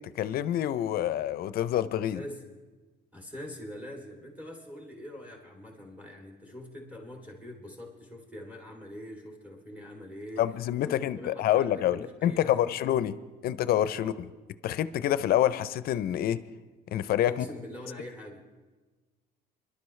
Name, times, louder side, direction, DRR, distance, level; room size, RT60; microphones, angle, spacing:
voice 1, 0.2-2.2 10.4-13.2 13.4-14.3 14.6-16.4 16.9-17.5, left 11 dB, 65° left, 15 dB, 0.5 m, -27 dB
voice 2, 2.1-2.4 3.1-10.5 10.9-12.8 13.9-14.2 17.3-18.4, left 1 dB, 10° right, 1 dB, 3.0 m, -44 dB
23.5 x 12.0 x 3.2 m, 1.3 s
cardioid pair, 110°, 17 cm